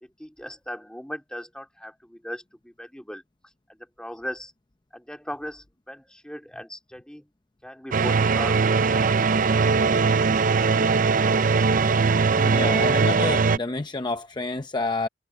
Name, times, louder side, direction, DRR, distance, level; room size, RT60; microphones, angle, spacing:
voice 1, 0.0-3.2 3.7-4.5 4.9-7.3 7.6-9.5, equal, 5° left, 2.4 m, -38 dB
sound 1, 7.9-13.6, right 4 dB, 50° right, 0.5 m, -20 dB
voice 2, 12.4-15.1, left 3 dB, 25° left, 0.7 m, -29 dB
head